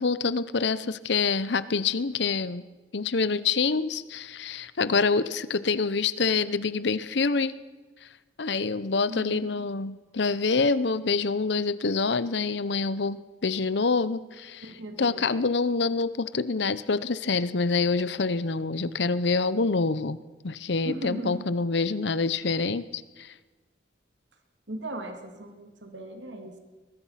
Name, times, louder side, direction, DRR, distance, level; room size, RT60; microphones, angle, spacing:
voice 1, 0.0-2.6 2.9-7.6 8.0-8.1 8.4-14.7 15.0-20.2 20.4-23.3, left 4 dB, 70° left, 16 dB, 0.8 m, -26 dB
voice 2, 9.1-9.6 14.6-15.4 20.8-21.5 24.7-26.6, right 1 dB, 80° right, 5 dB, 2.5 m, -38 dB
22.5 x 20.0 x 5.8 m, 1.2 s
head